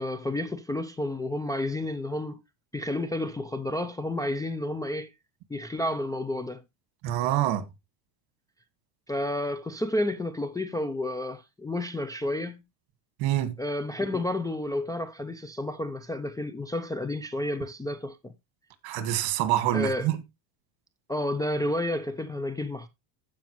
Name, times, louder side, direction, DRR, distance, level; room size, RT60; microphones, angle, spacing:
voice 1, 0.0-2.4 2.7-5.1 5.5-6.6 9.1-12.6 13.6-18.3 19.7-20.1 21.1-22.9, left 1 dB, 10° left, 0.4 m, -31 dB
voice 2, 7.0-7.6 13.2-13.5 18.8-20.2, right 12 dB, 65° right, 1.8 m, -26 dB
15.0 x 5.2 x 3.0 m
cardioid pair, 130°, 49 cm